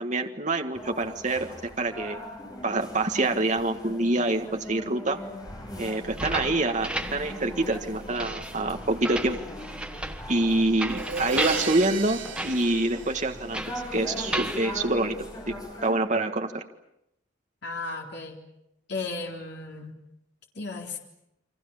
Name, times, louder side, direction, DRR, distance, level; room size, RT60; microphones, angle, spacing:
voice 1, 0.0-2.2 2.6-5.2 5.8-9.4 10.3-13.6 13.9-15.2 15.5-15.6 15.8-16.6, right 2 dB, 35° right, 5 dB, 1.7 m, -26 dB
sound 1, 0.7-15.9, left 1 dB, 20° left, 6.5 m, -41 dB
sound 2, 6.0-15.7, right 1 dB, 5° right, 1.4 m, -35 dB
Crash cymbal, 10.9-13.8, right 6 dB, 70° right, 2.6 m, -34 dB
voice 2, 17.6-18.4 18.9-19.9 20.5-21.0, left 3 dB, 55° left, 1 dB, 3.8 m, -34 dB
29.5 x 24.5 x 7.2 m, 0.82 s
head